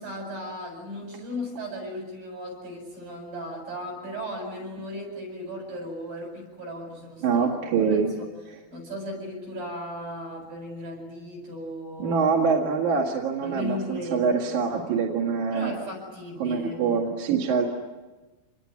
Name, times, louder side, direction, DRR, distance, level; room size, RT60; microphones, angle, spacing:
voice 1, 0.0-7.5 7.8-12.3 13.4-14.5 15.5-16.8, equal, 75° right, 2 dB, 9.5 m, -36 dB
voice 2, 7.2-8.1 12.0-15.7 16.4-17.7, right 5 dB, 60° right, -1 dB, 3.3 m, -24 dB
28.0 x 20.5 x 9.6 m, 1.2 s
omnidirectional pair, 4.2 m